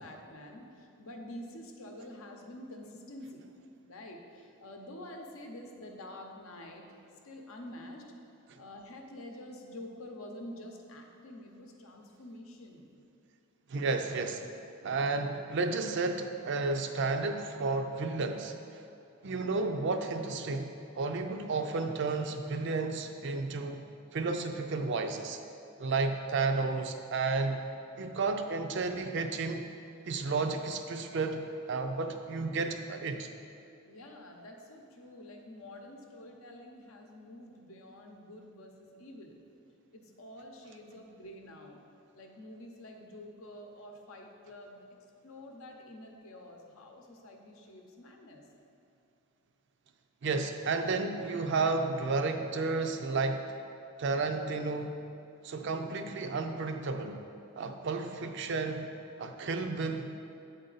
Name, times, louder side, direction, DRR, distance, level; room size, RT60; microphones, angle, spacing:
voice 1, 0.0-3.4 3.8-6.9 7.2-8.0 8.6-12.9 33.9-39.4 39.9-41.8 42.1-44.8 45.2-48.5 55.7-56.0, left 1 dB, 80° left, 2 dB, 0.7 m, -48 dB
voice 2, 13.7-14.5 14.8-18.8 19.2-23.8 24.1-25.4 25.8-27.6 28.0-29.7 30.1-33.3 50.2-53.4 54.0-54.9 55.4-57.2 57.6-58.9 59.2-60.2, right 3 dB, 55° right, 6 dB, 0.4 m, -32 dB
8.3 x 3.9 x 4.0 m, 2.6 s
head